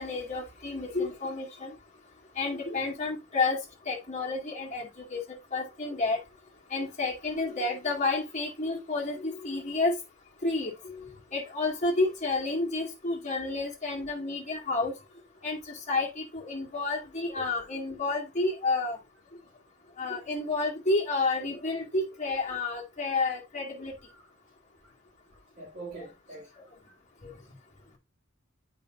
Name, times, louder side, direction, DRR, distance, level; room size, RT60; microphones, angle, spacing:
voice 1, 0.0-1.7 2.4-3.6 3.9-5.2 5.5-6.2 6.7-9.9 10.4-10.7 11.3-14.9 15.4-19.0 20.0-23.9, left 3 dB, 35° left, 2.1 m, -30 dB
voice 2, 25.6-26.6 26.8-26.9, right 3 dB, 45° right, 2.3 m, -44 dB
8.4 x 5.2 x 2.6 m
head